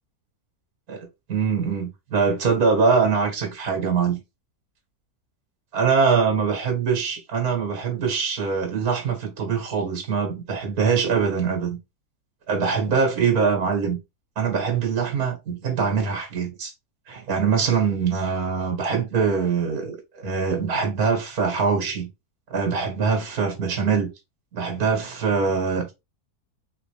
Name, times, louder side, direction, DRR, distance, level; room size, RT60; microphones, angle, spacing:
voice 1, 0.9-4.2 5.7-11.8 12.5-14.0 14.4-16.7 17.1-22.1 22.5-24.1 24.5-25.9, right 5 dB, 70° right, 2.3 m, -23 dB
4.8 x 3.3 x 3.3 m
omnidirectional pair, 1.6 m